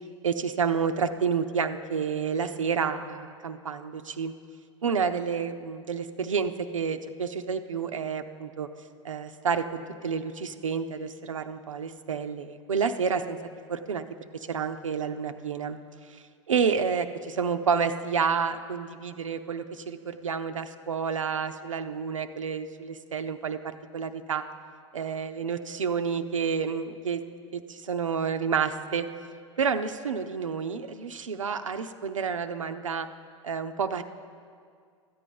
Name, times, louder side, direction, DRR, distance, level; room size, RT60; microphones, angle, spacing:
voice 1, 0.2-4.3 4.8-8.7 9.0-13.4 13.7-14.0 14.3-15.8 16.5-24.4 24.9-27.2 27.5-29.1 29.6-33.1 33.4-34.0, right 6 dB, 85° right, 8 dB, 0.6 m, -29 dB
13.5 x 8.6 x 5.2 m, 2.2 s
figure-of-eight pair, 85°, 16 cm